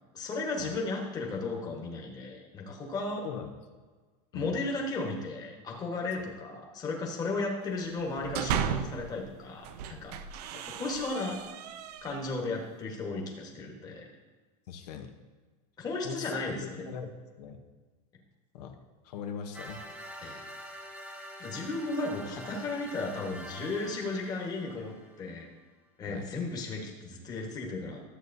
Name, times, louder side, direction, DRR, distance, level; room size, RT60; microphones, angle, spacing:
voice 1, 0.1-3.2 4.3-10.2 10.8-11.4 12.0-14.1 15.8-16.9 20.2-20.4 21.4-25.5 26.0-28.0, left 3 dB, 20° left, -1 dB, 1.3 m, -35 dB
sound 1, 8.0-9.1 9.6-12.4, right 8 dB, 80° right, 0.6 m, -35 dB
voice 2, 14.7-15.1 16.0-16.3 16.6-17.1 17.4-17.6 18.5-18.8 19.0-19.8 26.1-26.3, left 7 dB, 80° left, 4 dB, 0.9 m, -40 dB
sound 2, 19.5-25.4, equal, 5° right, 0.8 m, -45 dB
13.0 x 7.8 x 2.7 m, 1.4 s
supercardioid pair, 170°, 20 cm